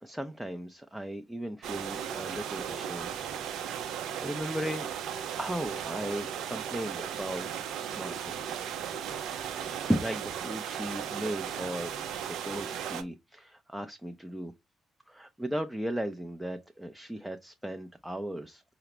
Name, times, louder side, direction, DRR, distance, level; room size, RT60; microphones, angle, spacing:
voice 1, 0.0-3.1 4.2-4.9 5.4-7.5 7.8-8.6 9.8-11.9 12.3-14.5 15.1-18.6, equal, 5° right, 0.5 m, -36 dB
sound 1, 1.6-13.0, right 9 dB, 65° right, 0.5 m, -36 dB
5.6 x 2.0 x 3.2 m
figure-of-eight pair, 40°, 0 cm